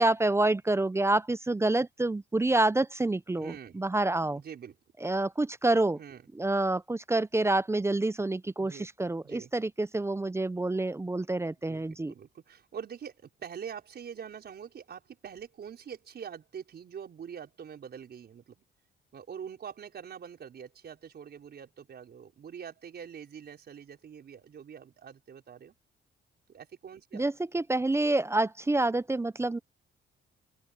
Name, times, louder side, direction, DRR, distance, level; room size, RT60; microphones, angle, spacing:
voice 1, 0.0-4.4 5.0-6.0 6.3-12.1 27.1-29.6, right 2 dB, 15° right, 0.6 m, -27 dB
voice 2, 3.4-3.8 4.4-4.8 6.0-6.2 8.6-8.9 9.2-9.5 11.7-18.6 19.1-25.7 26.5-27.3, right 7 dB, 55° right, 5.3 m, -44 dB
open air
cardioid pair, 90°, 20 cm